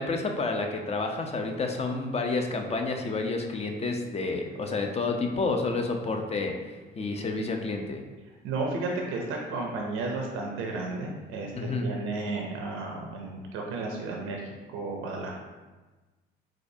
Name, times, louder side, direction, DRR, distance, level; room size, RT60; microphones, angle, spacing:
voice 1, 0.0-8.0 11.5-11.9, left 3 dB, 30° left, 3 dB, 0.5 m, -30 dB
voice 2, 8.4-11.5 11.8-14.4 14.7-15.4, right 3 dB, 80° right, 0 dB, 0.5 m, -33 dB
4.1 x 2.4 x 2.7 m, 1.3 s
supercardioid pair, 70°, 21 cm